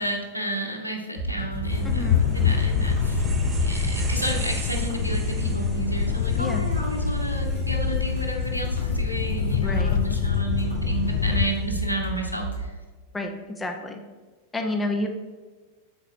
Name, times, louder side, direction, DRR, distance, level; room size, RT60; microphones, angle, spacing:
voice 1, 0.0-3.2 3.6-12.7, right 1 dB, 90° right, 1 dB, 0.9 m, -32 dB
sound 1, 1.1-12.6, right 1 dB, 80° left, 2.0 m, -31 dB
sound 2, 1.7-11.5, left 9 dB, 55° left, 0.4 m, -26 dB
sound 3, 1.7-11.7, right 2 dB, 20° right, 0.8 m, -35 dB
voice 2, 1.8-2.2 6.4-6.6 9.6-10.0 13.1-14.0 14.5-15.1, left 2 dB, 10° left, 4 dB, 0.8 m, -29 dB
6.8 x 4.9 x 4.5 m, 1.3 s
figure-of-eight pair, 90°, 0 cm